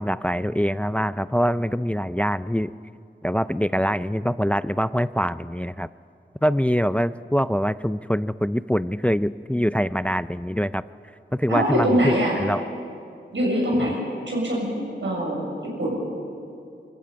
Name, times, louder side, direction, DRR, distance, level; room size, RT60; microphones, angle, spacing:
voice 1, 0.0-2.7 3.2-5.9 6.4-10.8 11.4-12.1 12.4-12.6, equal, 5° left, 15 dB, 0.4 m, -24 dB
voice 2, 11.5-12.4 13.3-15.5 15.8-16.1, equal, 85° right, -3 dB, 7.2 m, -23 dB
23.5 x 15.0 x 8.8 m, 2.5 s
wide cardioid pair, 50°, 19 cm